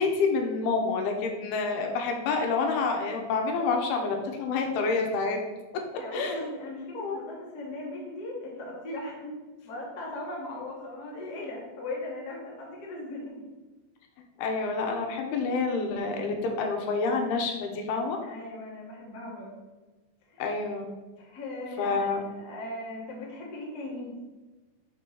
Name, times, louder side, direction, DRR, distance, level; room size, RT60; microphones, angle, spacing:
voice 1, 0.0-5.4 6.1-6.4 6.9-7.2 14.4-18.2 20.4-20.8 21.8-22.2, left 4 dB, 85° left, 2 dB, 2.8 m, -28 dB
voice 2, 6.0-13.4 15.4-15.5 18.2-19.5 20.3-20.4 21.2-24.1, left 2 dB, 45° left, -4 dB, 1.3 m, -38 dB
6.0 x 4.5 x 4.8 m, 1.2 s
omnidirectional pair, 4.4 m